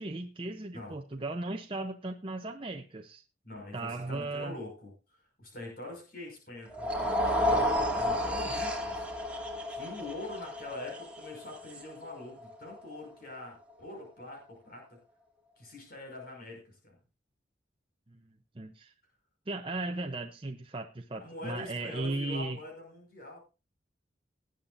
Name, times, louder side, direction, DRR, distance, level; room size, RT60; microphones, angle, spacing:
voice 1, 0.0-3.2 3.7-4.6 18.1-18.9 19.5-22.6, right 2 dB, 30° right, 3 dB, 0.7 m, -37 dB
voice 2, 3.4-4.9 5.2-9.1 9.7-15.0 15.6-17.0 21.1-23.4, left 2 dB, 55° left, 1 dB, 5.7 m, -44 dB
sound 1, 6.7-13.0, left 1 dB, 5° right, 2.1 m, -32 dB
19.5 x 8.9 x 2.6 m, 0.31 s
head